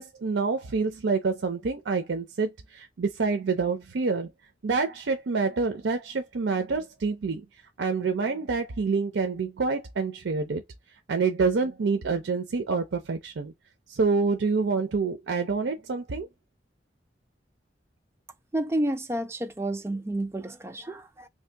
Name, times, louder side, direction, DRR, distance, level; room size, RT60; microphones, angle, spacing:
voice 1, 0.0-4.3 4.6-7.4 7.8-10.6 11.1-13.5 13.9-16.3, right 4 dB, 90° right, 0.5 m, -27 dB
voice 2, 18.5-21.3, right 1 dB, 15° right, 0.4 m, -30 dB
3.1 x 2.7 x 3.3 m
head